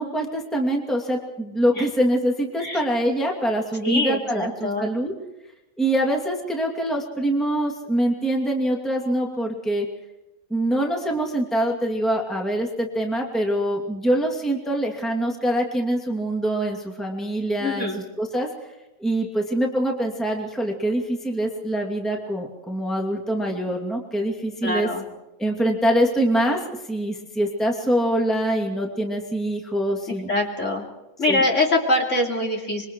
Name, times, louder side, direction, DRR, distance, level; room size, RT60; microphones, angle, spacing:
voice 1, 0.0-5.1 5.8-9.9 10.5-17.9 18.2-18.5 19.0-24.9 25.4-30.3 31.3-31.4, right 1 dB, ahead, 0 dB, 2.5 m, -24 dB
voice 2, 3.8-4.9 17.6-18.0 24.6-25.0 30.3-30.9 31.2-32.9, left 2 dB, 40° left, 0 dB, 3.3 m, -23 dB
26.0 x 23.5 x 4.7 m, 0.96 s
omnidirectional pair, 1.9 m